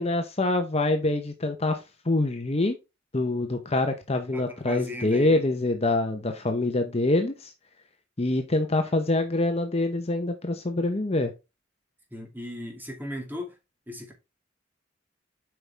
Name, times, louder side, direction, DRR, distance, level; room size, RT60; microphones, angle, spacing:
voice 1, 0.0-1.8 2.0-2.8 3.1-7.5 8.2-11.3, left 2 dB, 30° left, 0.9 m, -25 dB
voice 2, 4.3-5.5 12.1-13.6 13.9-14.1, left 1 dB, 10° right, 2.2 m, -37 dB
7.9 x 5.4 x 3.3 m
head